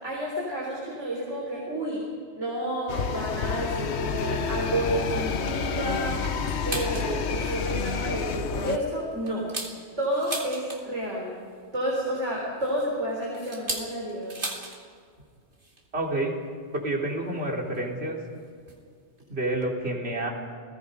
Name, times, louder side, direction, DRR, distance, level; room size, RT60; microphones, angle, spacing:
voice 1, 0.0-2.0 2.3-9.5 10.0-11.3 11.7-14.4, right 1 dB, 85° right, -3 dB, 4.3 m, -30 dB
sound 1, 2.9-8.8, left 6 dB, 70° left, 1.2 m, -29 dB
sound 2, 6.5-7.1 7.6-7.7 8.1-8.3 8.8-11.1 12.3-14.8 15.1-15.2 15.5-15.8 16.7-16.8 17.7-17.8 18.7-18.8 19.2-19.3 19.4-19.6, right 2 dB, 45° right, 2.7 m, -36 dB
voice 2, 15.9-16.3 16.7-18.2 19.3-20.3, right 1 dB, 65° right, -1 dB, 3.4 m, -28 dB
30.0 x 18.5 x 5.3 m, 2.1 s
omnidirectional pair, 1.2 m